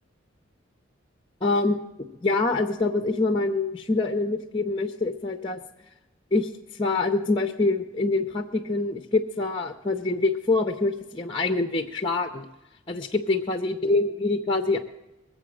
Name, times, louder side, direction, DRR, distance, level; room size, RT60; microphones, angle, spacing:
voice 1, 1.4-1.8 2.2-5.6 6.3-12.5 12.9-14.8, left 3 dB, 25° left, 6 dB, 0.6 m, -25 dB
22.0 x 7.7 x 6.3 m, 0.99 s
head